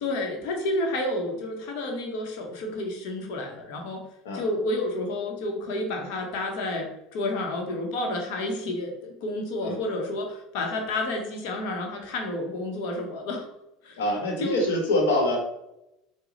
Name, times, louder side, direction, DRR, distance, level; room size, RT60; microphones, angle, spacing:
voice 1, 0.0-4.0 4.3-13.5 13.8-14.0 14.4-14.6, left 2 dB, 70° left, 2 dB, 1.1 m, -30 dB
voice 2, 14.0-15.4, left 1 dB, 85° left, 1 dB, 1.2 m, -25 dB
4.9 x 2.4 x 3.9 m, 0.87 s
supercardioid pair, 95°, 0 cm